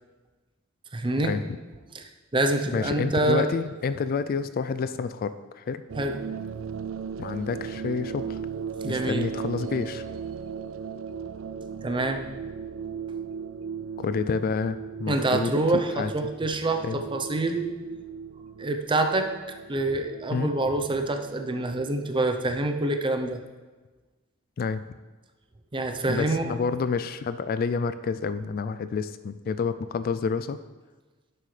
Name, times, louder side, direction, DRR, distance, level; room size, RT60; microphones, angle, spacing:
voice 1, 0.9-1.3 1.9-2.0 2.3-3.4 6.0-6.2 8.8-9.2 11.8-12.2 15.1-17.7 18.6-19.3 19.7-23.4 25.7-26.5, right 2 dB, 25° right, 6 dB, 0.6 m, -26 dB
voice 2, 2.7-5.8 7.2-8.4 8.9-10.0 14.0-15.5 15.9-16.1 16.8-17.0 20.3-20.5 24.6-24.8 26.1-30.6, left 5 dB, 45° left, 13 dB, 0.3 m, -29 dB
sound 1, 5.9-22.3, right 6 dB, 70° right, 0.4 m, -37 dB
10.5 x 7.7 x 3.3 m, 1.3 s
head